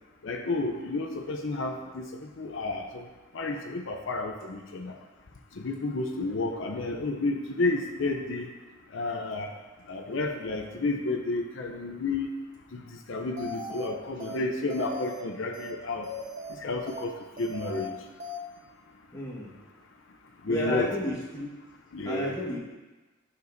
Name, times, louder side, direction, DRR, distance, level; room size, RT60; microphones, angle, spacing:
voice 1, 0.2-3.1 3.3-5.0 5.6-8.5 8.9-9.5 9.9-12.3 12.7-16.1 16.5-17.9 20.4-20.9 21.9-22.4, left 2 dB, 70° left, 2 dB, 0.7 m, -31 dB
sound 1, 13.4-13.9 14.2-14.4 14.7-15.2 15.5-15.7 16.0-16.6 16.9-17.1 17.4-17.9 18.2-18.4, left 1 dB, 40° right, 0.7 m, -39 dB
voice 2, 19.1-19.5 20.5-21.5 22.0-22.6, left 1 dB, 20° left, -6 dB, 1.5 m, -31 dB
9.4 x 6.8 x 2.7 m, 1.2 s
head